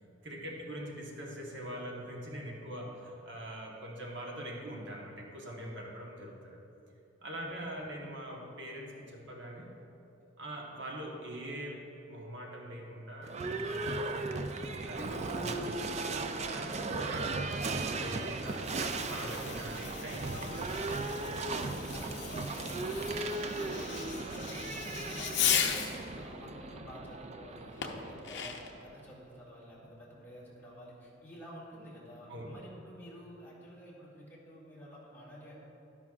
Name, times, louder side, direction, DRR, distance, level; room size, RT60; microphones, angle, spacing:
voice 1, 0.2-6.6 7.2-9.7 10.4-14.5 14.8-16.0 16.5-18.7 19.1-20.4 21.0-21.1 27.8-28.0 32.3-32.5, right 1 dB, 60° right, -1 dB, 1.2 m, -43 dB
Livestock farm animals working animals / Bell, 13.2-29.1, right 3 dB, 35° right, 0.4 m, -37 dB
Fireworks, 18.4-26.0 27.8-28.8, left 8 dB, 60° left, 0.7 m, -37 dB
voice 2, 20.3-21.1 21.9-25.8 26.1-35.5, equal, 10° left, -7 dB, 2.2 m, -51 dB
12.0 x 10.5 x 2.4 m, 2.9 s
head